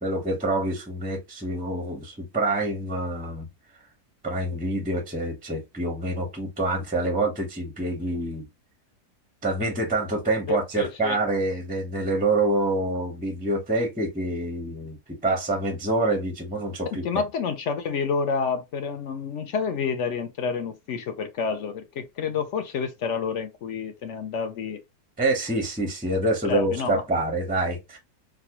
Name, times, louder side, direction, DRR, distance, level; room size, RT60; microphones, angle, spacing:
voice 1, 0.0-3.5 4.2-8.5 9.4-17.0 25.2-28.0, right 2 dB, 10° right, 0.4 m, -26 dB
voice 2, 10.5-11.2 17.0-24.8 26.4-27.0, left 5 dB, 65° left, 0.7 m, -29 dB
3.9 x 2.2 x 2.9 m
omnidirectional pair, 1.7 m